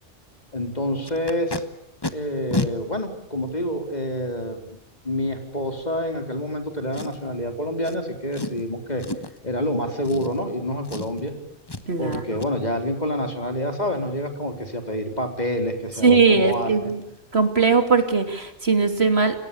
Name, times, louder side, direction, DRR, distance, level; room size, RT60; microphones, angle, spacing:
voice 1, 0.5-1.6 2.1-4.8 5.0-9.1 9.4-11.4 12.0-16.9, equal, 35° left, 5 dB, 4.2 m, -27 dB
Packing tape duct tape, 1.0-1.6 2.0-2.1 2.5-2.7 3.5-3.6 6.9-7.4 7.8-8.0 8.3-8.6 9.0-9.4 10.0-10.6 10.8-11.3 11.7-11.8 12.1-12.5 15.5-15.6 16.0-16.1 16.5-16.6 16.9-17.2 17.4-17.5, left 2 dB, 20° left, 1.5 m, -31 dB
voice 2, 11.9-12.2 16.0-17.0 17.3-19.4, right 4 dB, 55° right, 7 dB, 3.0 m, -19 dB
30.0 x 26.0 x 7.0 m, 0.84 s
omnidirectional pair, 1.2 m